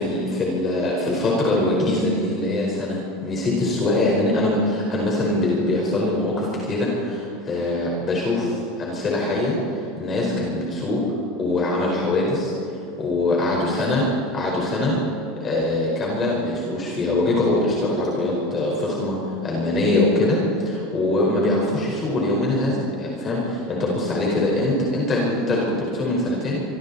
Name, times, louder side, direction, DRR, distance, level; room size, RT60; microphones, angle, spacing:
voice 1, 0.0-11.0 11.4-12.5 13.0-14.0 14.3-15.0 15.4-19.2 19.4-26.6, left 2 dB, 25° left, -2 dB, 4.7 m, -23 dB
25.5 x 25.0 x 4.3 m, 2.8 s
supercardioid pair, 145°, 0 cm